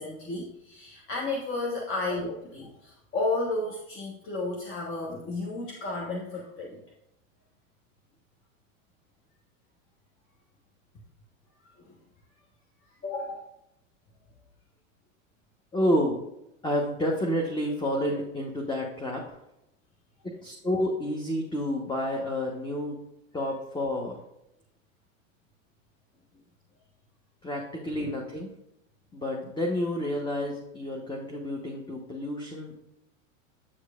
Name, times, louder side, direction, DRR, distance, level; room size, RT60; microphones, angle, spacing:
voice 1, 0.0-6.8 11.8-12.0 13.0-13.4 28.0-28.1, left 2 dB, 30° left, -2 dB, 1.3 m, -32 dB
voice 2, 15.7-16.2 16.6-19.4 20.2-23.0 23.3-24.2 27.4-28.5 29.1-32.8, equal, 10° left, 0 dB, 1.0 m, -29 dB
8.7 x 6.4 x 2.4 m, 0.82 s
hypercardioid pair, 100°, 41 cm